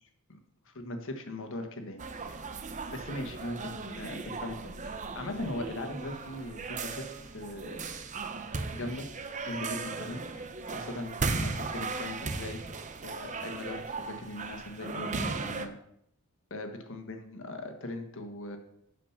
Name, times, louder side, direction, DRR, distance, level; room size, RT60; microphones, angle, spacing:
voice 1, 0.6-2.5 2.9-7.0 7.3-7.8 8.7-9.1 9.5-12.6 13.0-15.8 16.5-18.6, left 1 dB, 60° left, 6 dB, 1.5 m, -39 dB
sound 1, 2.0-15.7, right 4 dB, 35° right, 0.7 m, -37 dB
11.5 x 5.1 x 5.7 m, 0.74 s
head